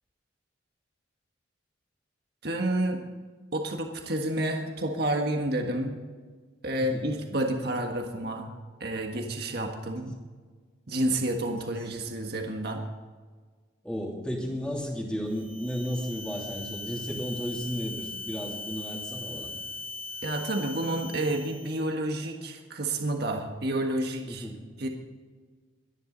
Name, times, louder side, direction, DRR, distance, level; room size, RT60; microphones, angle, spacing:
voice 1, 2.4-3.0 3.5-6.0 6.6-8.5 8.8-10.2 10.9-12.8 20.2-24.5 24.8-24.9, right 1 dB, 55° right, 2 dB, 1.6 m, -30 dB
voice 2, 6.7-7.1 13.8-19.5 24.3-24.6, equal, 5° left, -2 dB, 3.0 m, -33 dB
sound 1, 15.3-21.9, left 3 dB, 80° right, 2.7 m, -40 dB
24.0 x 10.5 x 4.0 m, 1.5 s
head